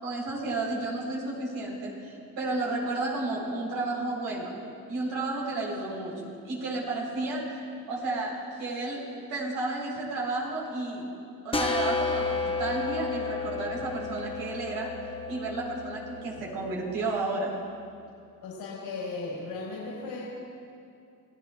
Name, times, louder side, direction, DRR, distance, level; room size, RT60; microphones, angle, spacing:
voice 1, 0.0-4.6 4.9-9.0 9.3-11.1 11.4-14.9 15.3-17.5, right 2 dB, 85° right, -3 dB, 4.2 m, -32 dB
sound 1, 11.5-17.0, left 4 dB, 15° left, 1.3 m, -32 dB
voice 2, 18.4-20.4, left 3 dB, 80° left, -5 dB, 4.0 m, -36 dB
26.5 x 16.0 x 2.4 m, 2.4 s
cardioid pair, 80°, 36 cm